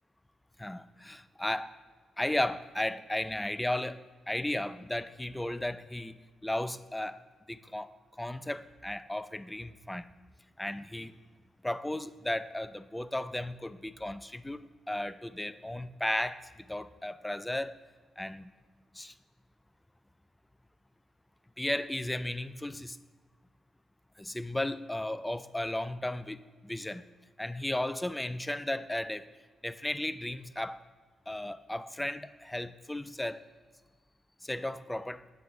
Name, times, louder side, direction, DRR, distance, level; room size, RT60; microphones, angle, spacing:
voice 1, 0.6-1.8 2.2-6.2 6.4-7.2 7.5-10.1 10.6-11.2 11.6-16.4 16.7-17.8 18.2-18.5 19.0-19.1 21.6-23.0 24.2-27.0 27.4-29.3 29.6-30.8 31.3-33.4 34.4-35.2, left 1 dB, 10° left, 14 dB, 0.3 m, -35 dB
9.2 x 3.5 x 4.8 m, 1.4 s
hypercardioid pair, 45°, 0 cm